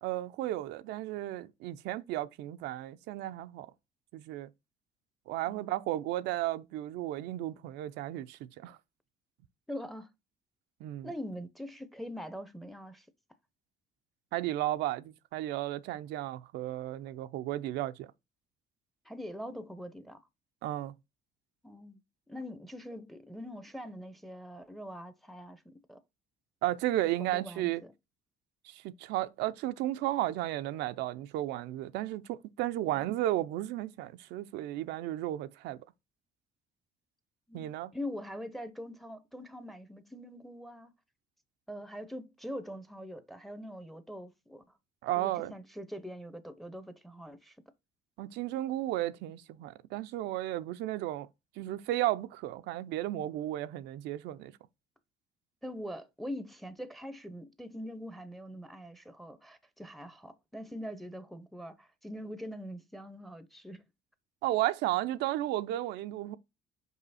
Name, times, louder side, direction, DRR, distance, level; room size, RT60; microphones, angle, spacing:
voice 1, 0.0-3.7 4.1-4.5 5.3-8.8 10.8-11.1 14.3-18.1 20.6-20.9 26.6-27.8 28.6-35.8 37.5-37.9 45.0-45.5 48.2-51.3 51.6-54.5 64.4-66.4, right 15 dB, 85° right, 0.5 m, -34 dB
voice 2, 5.5-5.8 9.7-10.1 11.0-13.1 19.0-20.2 21.6-22.0 22.3-26.0 27.2-27.9 32.9-33.1 37.5-40.9 41.7-44.6 45.2-47.6 55.6-63.8, equal, ahead, 0.6 m, -43 dB
5.5 x 4.8 x 4.1 m
cardioid pair, 110°, 17 cm